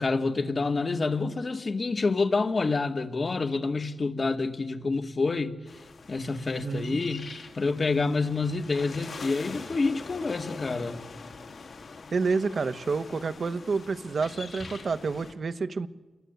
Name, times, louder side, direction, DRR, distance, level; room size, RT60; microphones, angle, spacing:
voice 1, 0.0-5.5 6.1-7.3 7.5-11.1, left 3 dB, 50° left, 2.1 m, -28 dB
sound 1, 5.7-15.3, left 4 dB, 70° left, 3.6 m, -43 dB
voice 2, 6.6-7.0 12.1-15.9, right 4 dB, 65° right, 1.3 m, -29 dB
28.5 x 23.0 x 8.3 m
cardioid pair, 60°, 0 cm